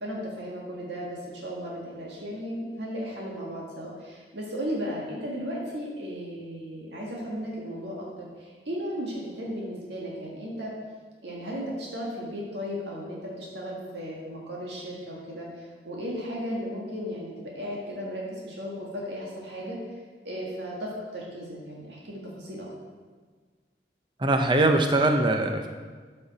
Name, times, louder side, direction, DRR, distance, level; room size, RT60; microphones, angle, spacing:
voice 1, 0.0-10.7 11.2-19.8 20.2-22.7, equal, 75° right, -4 dB, 1.8 m, -35 dB
voice 2, 24.2-25.7, right 2 dB, 25° right, 5 dB, 0.6 m, -22 dB
12.5 x 5.6 x 4.1 m, 1.5 s
head